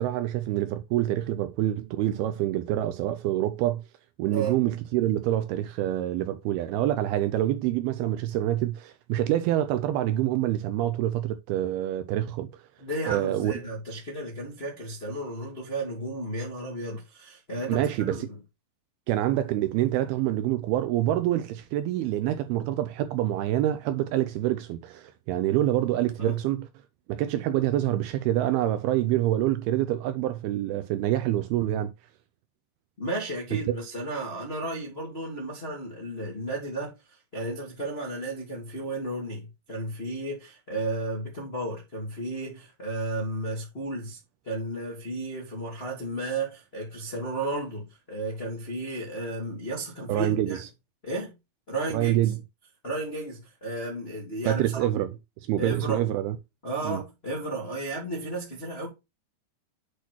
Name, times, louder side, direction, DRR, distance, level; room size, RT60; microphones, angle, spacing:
voice 1, 0.0-3.8 4.2-12.5 13.1-13.5 17.7-18.2 19.1-26.7 27.1-31.9 33.7-33.8 50.1-50.7 51.9-52.3 54.5-55.1 55.5-56.4 56.8-57.0, right 13 dB, 85° right, 2.3 m, -26 dB
voice 2, 12.8-18.4 26.2-26.4 33.0-44.2 44.4-50.6 51.0-51.3 51.7-52.1 52.8-54.8 55.6-56.1 56.6-58.9, right 2 dB, 40° left, 0.8 m, -33 dB
8.3 x 2.9 x 5.9 m
omnidirectional pair, 4.8 m